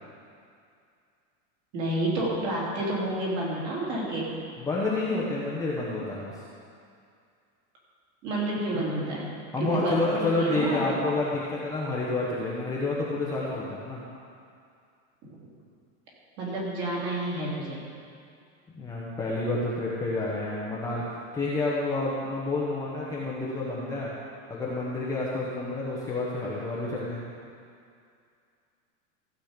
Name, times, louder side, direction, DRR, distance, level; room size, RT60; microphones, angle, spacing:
voice 1, 1.7-4.3 8.2-9.3 9.6-10.9 16.4-17.8, right 1 dB, 40° right, -5 dB, 3.1 m, -29 dB
voice 2, 4.6-6.3 9.5-14.0 18.7-24.1 24.5-27.2, left 2 dB, 10° left, -7 dB, 0.9 m, -29 dB
15.0 x 7.7 x 5.1 m, 2.4 s
supercardioid pair, 170°, 41 cm